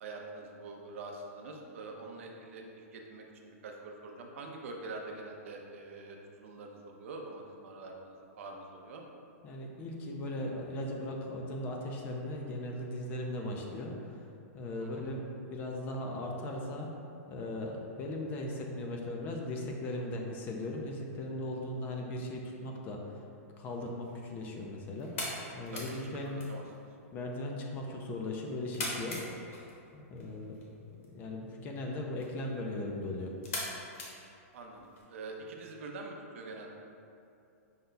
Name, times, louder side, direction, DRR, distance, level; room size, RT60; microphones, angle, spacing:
voice 1, 0.0-9.0 14.8-15.1 25.7-26.0 26.3-26.6 34.5-36.7, right 3 dB, 60° right, 1 dB, 0.6 m, -45 dB
voice 2, 9.4-14.2 14.5-15.2 15.5-16.9 17.3-23.2 23.5-26.4 27.1-29.2 29.9-30.6 31.1-33.4, left 1 dB, 20° left, 1 dB, 0.3 m, -38 dB
sound 1, 23.6-35.0, left 2 dB, 60° left, 1.1 m, -44 dB
5.4 x 2.2 x 3.9 m, 2.6 s
hypercardioid pair, 160°, 8 cm